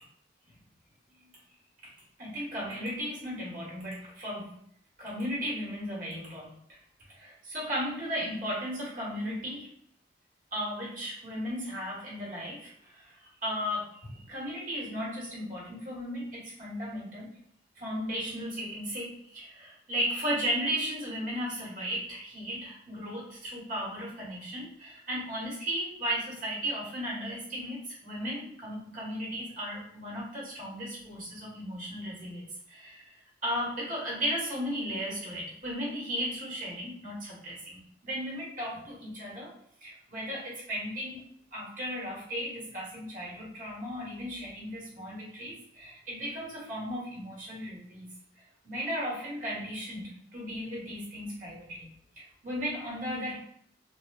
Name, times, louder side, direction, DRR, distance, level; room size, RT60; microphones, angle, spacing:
voice 1, 2.2-4.5 5.0-6.5 7.2-9.7 10.5-12.7 13.4-17.3 17.8-32.4 32.7-33.0 33.4-39.5 39.8-41.2 41.5-48.1 48.6-51.9 52.4-53.4, equal, 45° right, -5 dB, 1.1 m, -35 dB
3.1 x 2.2 x 2.2 m, 0.67 s
head